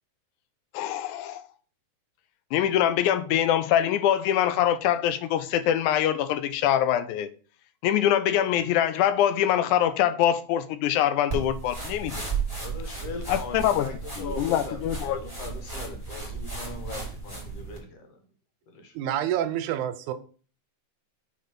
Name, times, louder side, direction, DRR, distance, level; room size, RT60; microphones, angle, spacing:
voice 1, 0.7-1.4 2.5-7.3 7.8-12.3 13.3-13.9 14.2-15.2, left 10 dB, 90° left, 2.1 m, -24 dB
sound 1, 11.3-17.8, right 4 dB, 15° left, 1.5 m, -34 dB
voice 2, 12.6-18.2 18.7-18.9, left 3 dB, 60° left, 2.1 m, -40 dB
voice 3, 18.9-20.1, right 11 dB, 85° right, 2.1 m, -28 dB
5.0 x 4.0 x 5.8 m
omnidirectional pair, 3.4 m